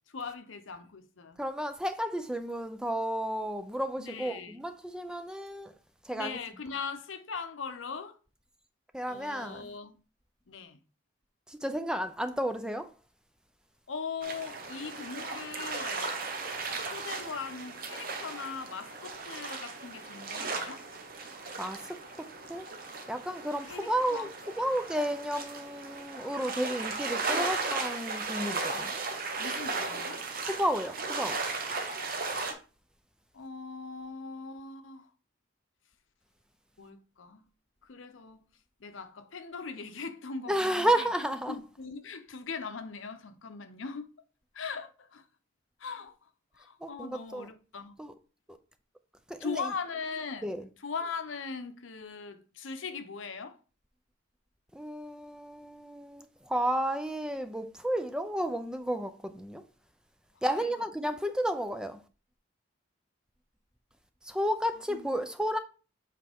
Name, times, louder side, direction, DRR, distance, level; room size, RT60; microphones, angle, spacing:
voice 1, 0.1-1.4 4.0-4.5 6.1-8.2 9.1-10.0 10.5-10.8 13.9-16.2 16.9-20.8 23.7-24.3 29.4-30.2 33.3-35.1 36.8-37.5 37.8-38.4 38.8-40.9 41.5-44.1 44.5-45.2 45.8-46.2 46.5-48.0 49.4-50.5 50.8-53.6 60.4-60.6 64.9-65.1, left 5 dB, 80° left, 0.7 m, -40 dB
voice 2, 1.4-5.7 6.0-6.4 8.9-9.7 11.5-12.9 21.6-22.0 22.5-22.7 23.1-29.0 30.5-31.4 40.5-41.6 46.8-47.5 48.0-48.1 48.5-48.6 49.3-49.7 50.4-50.7 54.7-59.6 60.4-62.0 64.2-65.6, right 1 dB, 5° right, 0.4 m, -32 dB
sound 1, 14.2-32.5, right 3 dB, 45° right, 1.0 m, -36 dB
7.5 x 4.3 x 3.5 m
head